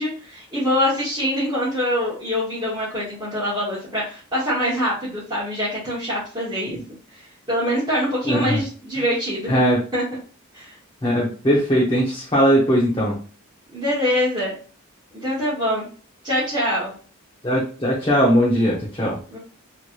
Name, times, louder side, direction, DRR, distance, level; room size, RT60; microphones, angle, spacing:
voice 1, 0.0-6.8 7.1-9.5 9.9-10.0 10.5-10.8 13.7-14.5 15.1-15.8 16.2-16.9 19.3-19.4, equal, 20° right, -10 dB, 1.2 m, -24 dB
voice 2, 8.2-8.6 9.5-9.8 11.0-13.2 17.4-19.2, equal, 20° left, -6 dB, 0.8 m, -19 dB
3.2 x 2.8 x 2.4 m, 0.39 s
head